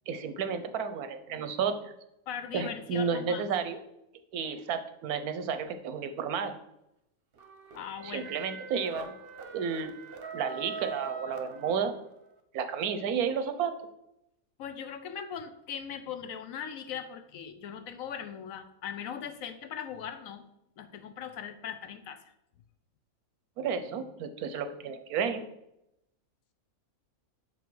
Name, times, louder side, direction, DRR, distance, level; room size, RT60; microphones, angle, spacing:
voice 1, 0.1-1.9 2.5-3.8 4.3-6.6 8.0-9.1 9.5-9.9 10.3-11.9 12.5-13.8 23.6-25.4, right 6 dB, 85° right, 9 dB, 1.2 m, -32 dB
voice 2, 2.3-3.5 7.7-8.3 14.6-20.4 20.8-22.3, left 8 dB, 70° left, 10 dB, 1.0 m, -39 dB
sound 1, 7.4-12.2, right 5 dB, 50° right, 0.8 m, -42 dB
6.0 x 5.4 x 4.7 m, 0.85 s
omnidirectional pair, 1.5 m